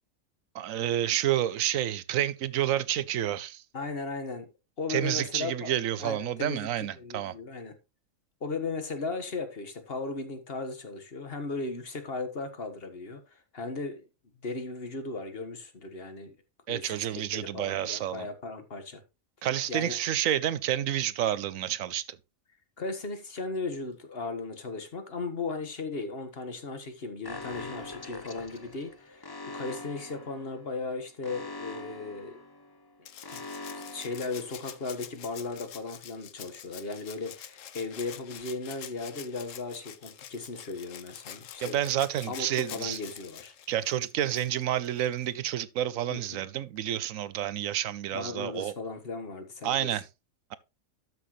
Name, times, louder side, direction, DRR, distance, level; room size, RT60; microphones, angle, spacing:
voice 1, 0.5-3.6 4.9-7.3 16.7-18.3 19.4-22.2 41.6-43.0 43.7-48.7 49.6-50.0, right 11 dB, 75° right, 1.1 m, -29 dB
voice 2, 3.7-5.7 6.0-6.7 7.0-7.7 8.4-14.0 14.4-16.4 16.7-19.0 19.7-19.9 22.8-32.4 33.3-33.4 33.7-41.8 42.3-43.5 46.1-46.3 48.1-50.0, left 3 dB, 45° left, 1.7 m, -36 dB
Alarm, 27.2-35.0, left 2 dB, 25° left, 0.6 m, -43 dB
Rattle (instrument), 33.0-45.4 46.8-46.9, left 10 dB, 70° left, 1.1 m, -47 dB
12.5 x 6.2 x 3.1 m
omnidirectional pair, 1.4 m